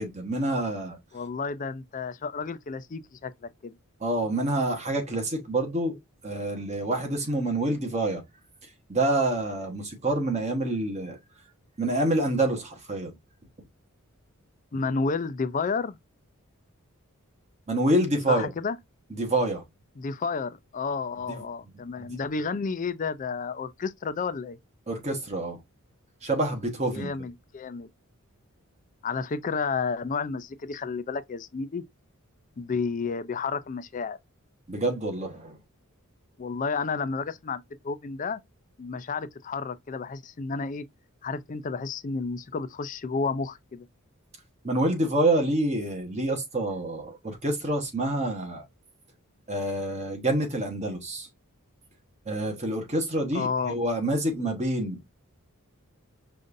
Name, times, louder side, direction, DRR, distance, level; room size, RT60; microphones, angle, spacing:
voice 1, 0.0-1.0 4.0-6.0 6.2-8.2 8.9-11.2 11.8-13.1 17.7-18.5 19.1-19.6 22.0-22.1 24.9-25.6 26.2-27.1 34.7-35.6 44.6-48.6 49.5-51.3 52.3-55.0, right 1 dB, 30° right, 1.1 m, -27 dB
voice 2, 1.1-3.7 14.7-16.0 18.3-18.8 20.0-24.6 26.9-27.9 29.0-31.8 32.6-34.2 36.4-38.4 38.8-40.9 41.2-43.8 53.3-53.8, left 4 dB, 35° left, 0.4 m, -31 dB
5.2 x 2.5 x 2.5 m
head